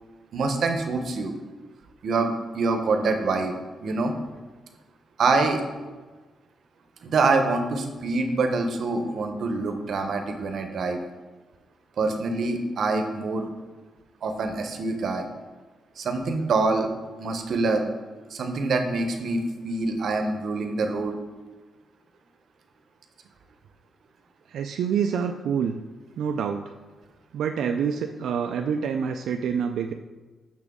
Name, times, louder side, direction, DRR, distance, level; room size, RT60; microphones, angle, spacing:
voice 1, 0.3-1.3 2.0-3.5 3.8-4.1 5.2-5.6 7.0-11.0 12.0-13.5 14.2-15.3 16.0-16.9 17.2-17.8 18.3-21.2, right 3 dB, 55° right, 5 dB, 0.7 m, -25 dB
voice 2, 24.5-25.8 26.2-26.6 27.3-29.9, right 7 dB, 80° right, 4 dB, 0.3 m, -27 dB
6.1 x 6.1 x 3.6 m, 1.3 s
wide cardioid pair, 165°, 0 cm